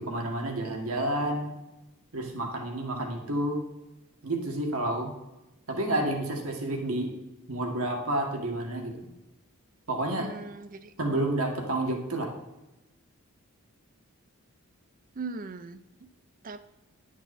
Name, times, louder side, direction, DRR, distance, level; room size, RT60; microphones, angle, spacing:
voice 1, 0.0-1.5 2.1-3.6 4.2-5.1 5.7-7.1 7.5-8.9 9.9-10.3 11.0-12.3, right 1 dB, 80° right, 2 dB, 1.8 m, -30 dB
voice 2, 10.2-10.9 15.1-16.1 16.4-16.6, right 3 dB, 40° right, 12 dB, 0.5 m, -39 dB
11.0 x 6.2 x 4.2 m, 0.97 s
head